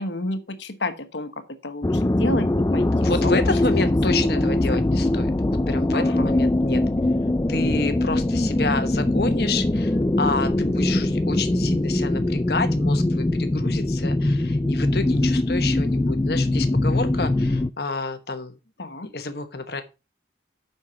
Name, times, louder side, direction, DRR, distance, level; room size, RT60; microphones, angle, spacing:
voice 1, 0.0-2.9 3.2-3.4 4.1-4.8 5.9-6.3 18.8-19.1, left 2 dB, 75° left, 1.2 m, -31 dB
sound 1, 1.8-17.7, left 1 dB, 15° left, 0.4 m, -22 dB
voice 2, 2.7-5.3 5.7-6.8 7.5-18.6 19.0-19.8, left 3 dB, 60° left, 1.1 m, -29 dB
8.0 x 5.7 x 5.8 m
head